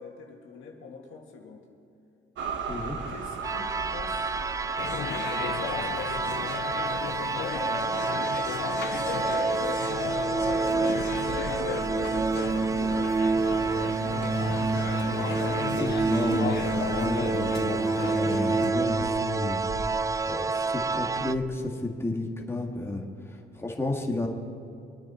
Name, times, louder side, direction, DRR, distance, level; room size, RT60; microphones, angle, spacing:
voice 1, 0.0-1.7 3.1-4.4 5.5-6.4 6.8-8.1 8.6-9.9 10.5-13.4, left 5 dB, 80° left, 0 dB, 2.0 m, -43 dB
sound 1, 2.4-21.5, right 5 dB, 70° right, 1.2 m, -41 dB
sound 2, 3.4-21.3, right 4 dB, 15° right, 0.4 m, -28 dB
sound 3, 4.8-18.7, left 9 dB, 60° left, 0.6 m, -35 dB
voice 2, 15.1-15.5 15.8-19.6 20.3-24.3, left 2 dB, 10° left, 0 dB, 1.8 m, -32 dB
24.5 x 9.4 x 4.3 m, 2.5 s
cardioid pair, 90°, 20 cm